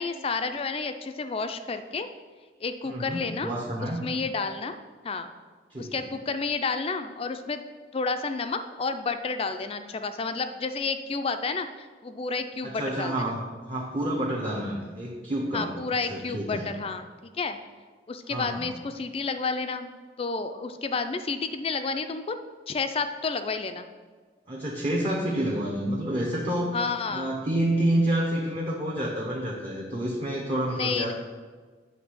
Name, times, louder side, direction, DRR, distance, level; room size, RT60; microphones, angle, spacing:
voice 1, 0.0-2.1 2.6-3.5 4.0-4.7 5.0-5.3 5.8-7.6 7.9-13.1 15.5-17.6 18.1-22.4 22.7-23.9 26.7-27.3 30.7-31.1, left 4 dB, 35° left, 9 dB, 0.4 m, -30 dB
voice 2, 2.9-4.0 5.7-5.9 12.6-15.7 16.1-16.7 18.3-18.7 24.5-26.7 27.1-31.1, right 1 dB, 30° right, -4 dB, 0.9 m, -28 dB
8.0 x 3.2 x 6.2 m, 1.4 s
head